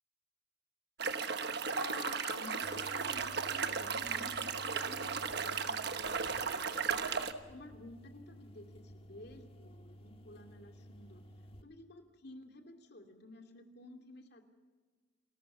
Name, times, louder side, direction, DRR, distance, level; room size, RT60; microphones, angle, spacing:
sound 1, 1.0-7.3, right 5 dB, 55° right, 1.2 m, -35 dB
voice 1, 1.8-7.2 7.5-11.3 11.6-14.4, left 2 dB, 55° left, 5 dB, 2.6 m, -51 dB
sound 2, 2.6-11.6, equal, 30° left, 1.5 m, -55 dB
29.5 x 14.5 x 6.9 m, 1.4 s
head